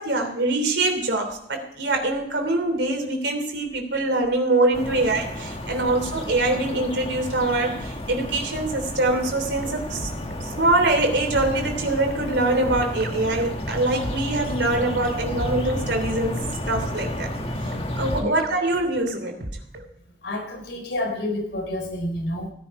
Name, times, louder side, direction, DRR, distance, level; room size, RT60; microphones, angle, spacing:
voice 1, 0.0-10.1 10.4-16.4 16.7-17.3 17.6-19.4, right 2 dB, 80° right, 4 dB, 3.2 m, -24 dB
sound 1, 4.7-18.2, left 1 dB, 35° left, 1.6 m, -32 dB
sound 2, 9.3-19.9, right 1 dB, 55° right, 1.3 m, -38 dB
voice 2, 20.2-22.5, left 1 dB, 80° left, 3 dB, 3.8 m, -29 dB
17.0 x 10.5 x 4.7 m, 0.76 s
head